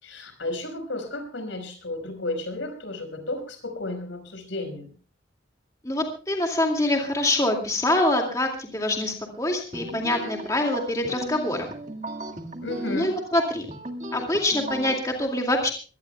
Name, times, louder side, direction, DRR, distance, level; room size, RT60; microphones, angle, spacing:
voice 1, 0.0-4.9 12.6-13.1, left 2 dB, 80° left, 7 dB, 5.3 m, -33 dB
voice 2, 5.8-11.7 12.9-13.7 14.1-15.7, left 1 dB, 15° left, 2 dB, 2.3 m, -25 dB
sound 1, 9.7-15.0, right 1 dB, 40° right, 1.9 m, -36 dB
24.0 x 18.0 x 2.3 m, 0.37 s
head